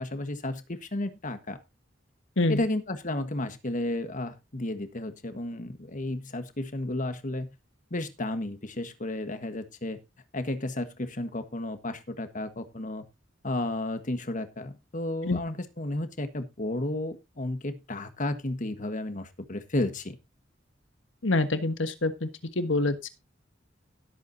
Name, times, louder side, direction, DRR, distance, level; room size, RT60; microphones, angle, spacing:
voice 1, 0.0-1.6 2.5-7.5 7.9-10.0 10.3-13.0 13.4-20.2, left 1 dB, 45° left, 10 dB, 1.5 m, -32 dB
voice 2, 21.2-22.3 22.5-23.1, left 2 dB, 75° left, 10 dB, 1.5 m, -26 dB
17.0 x 8.2 x 2.8 m, 0.24 s
head